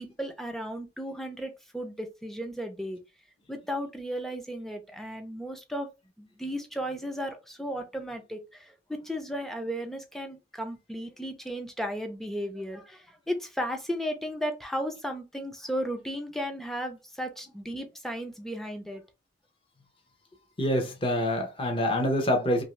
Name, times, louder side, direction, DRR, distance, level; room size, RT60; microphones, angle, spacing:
voice 1, 0.0-3.0 3.5-5.9 6.2-19.0, equal, ahead, 0.5 m, -35 dB
voice 2, 20.6-22.6, left 1 dB, 30° left, 0.8 m, -26 dB
2.9 x 2.6 x 3.1 m
head